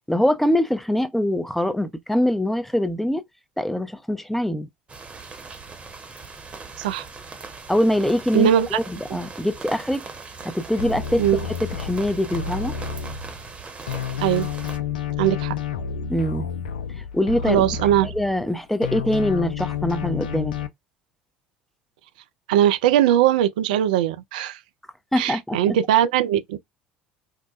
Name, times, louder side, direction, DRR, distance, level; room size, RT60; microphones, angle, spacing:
voice 1, 0.1-3.2 3.6-4.7 7.7-10.0 10.4-11.2 11.6-12.8 16.1-16.5 17.0-17.7 18.0-20.5 25.1-25.8, left 1 dB, 5° left, 0.6 m, -23 dB
sound 1, 4.9-14.8, right 4 dB, 25° right, 1.0 m, -40 dB
voice 2, 8.3-8.8 9.1-9.2 11.2-11.4 14.2-14.5 15.2-15.5 17.5-18.1 22.5-24.6 25.2-26.6, right 11 dB, 70° right, 0.4 m, -20 dB
sound 2, 10.8-13.6 13.9-18.5 18.8-20.7, left 7 dB, 80° left, 0.4 m, -30 dB
4.6 x 2.1 x 2.4 m
figure-of-eight pair, 60°, 5 cm